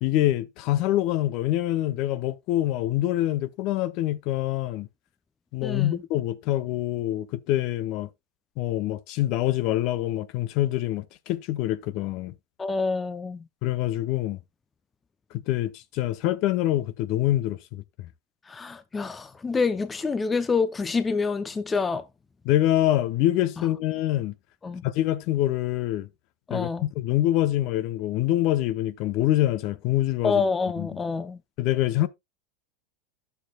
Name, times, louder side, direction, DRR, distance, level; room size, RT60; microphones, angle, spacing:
voice 1, 0.0-4.9 5.5-8.1 8.6-12.3 13.6-14.4 15.5-18.1 22.4-24.3 24.8-26.1 26.5-30.4 30.8-30.9 31.6-32.1, left 14 dB, 50° left, 0.8 m, -25 dB
voice 2, 5.6-6.0 12.6-13.4 18.5-22.0 23.6-23.7 24.6-24.8 26.5-26.9 30.2-31.4, left 4 dB, 15° left, 0.6 m, -27 dB
11.5 x 6.8 x 2.3 m
supercardioid pair, 135°, 0 cm